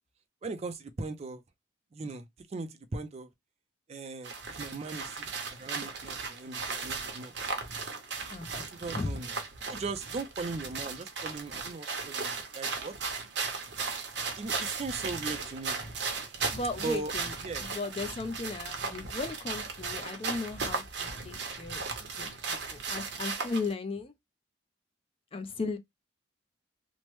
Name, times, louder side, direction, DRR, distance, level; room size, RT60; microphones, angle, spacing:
voice 1, 0.4-1.4 1.9-3.3 3.9-5.3 5.6-7.3 8.6-9.3 9.7-13.0 14.2-15.8 16.8-17.1 17.4-17.6 18.8-19.0, right 3 dB, 35° right, 0.4 m, -39 dB
sound 1, 4.2-23.7, right 4 dB, 65° right, 0.8 m, -36 dB
voice 2, 16.5-21.9 22.2-24.1 25.3-25.8, left 3 dB, 30° left, 0.4 m, -36 dB
3.0 x 2.1 x 3.0 m
head